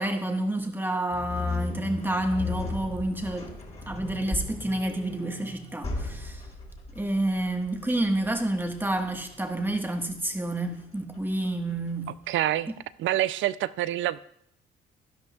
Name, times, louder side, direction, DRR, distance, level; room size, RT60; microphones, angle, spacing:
voice 1, 0.0-3.6 3.9-6.4 6.9-12.1, right 1 dB, 10° right, 1.4 m, -29 dB
sound 1, 1.1-12.2, left 3 dB, 35° left, 3.8 m, -37 dB
voice 2, 12.3-12.7 13.0-14.2, right 13 dB, 75° right, 0.5 m, -26 dB
16.5 x 11.5 x 2.3 m
cardioid pair, 90°, 20 cm